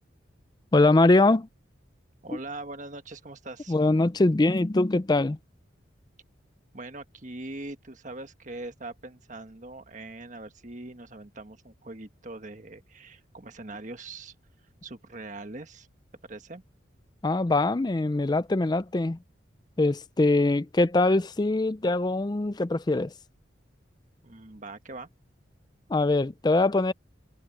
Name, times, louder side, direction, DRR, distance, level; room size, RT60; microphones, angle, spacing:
voice 1, 0.7-1.5 3.7-5.4 17.2-19.2 19.8-23.1 25.9-26.9, left 2 dB, 20° left, 0.4 m, -23 dB
voice 2, 2.2-3.7 6.7-14.3 14.8-15.9 16.2-16.6 24.2-25.1, right 2 dB, 40° right, 1.5 m, -41 dB
head